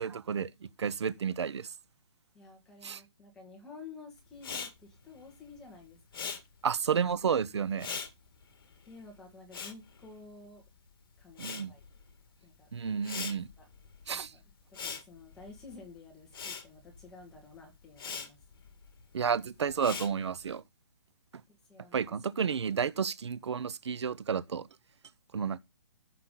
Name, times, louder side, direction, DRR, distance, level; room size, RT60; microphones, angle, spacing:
voice 1, 0.0-1.7 2.8-3.0 6.6-7.9 11.4-11.7 12.7-13.5 14.1-14.3 19.1-20.6 21.9-24.7 25.3-25.6, right 6 dB, 85° right, 0.8 m, -31 dB
voice 2, 2.3-6.4 8.8-10.6 11.2-11.8 12.4-12.7 13.6-13.7 14.1-14.4 14.7-18.4 21.5-22.1, left 4 dB, 5° left, 1.8 m, -52 dB
Respiratory sounds, 4.4-10.8 11.1-20.6, left 6 dB, 55° left, 2.0 m, -43 dB
14.5 x 5.9 x 3.8 m
hypercardioid pair, 180°, 14 cm